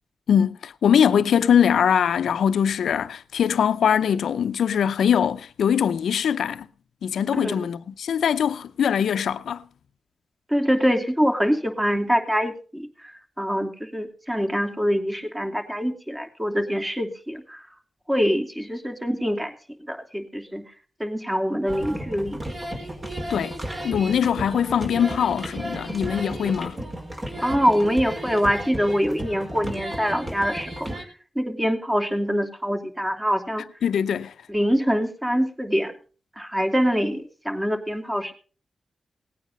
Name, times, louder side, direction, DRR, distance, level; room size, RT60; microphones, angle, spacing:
voice 1, 0.3-6.7 7.0-9.6 23.3-23.5 23.8-26.8 33.8-34.3, left 8 dB, 85° left, 0.6 m, -22 dB
voice 2, 10.5-12.9 13.4-17.6 18.1-19.5 19.9-20.6 21.0-22.4 27.4-30.9 31.4-33.6 34.5-35.9 36.4-38.3, equal, 15° right, 2.9 m, -24 dB
sound 1, 21.7-31.0, right 1 dB, 35° right, 4.7 m, -33 dB
18.5 x 9.3 x 5.3 m
cardioid pair, 50°, 0 cm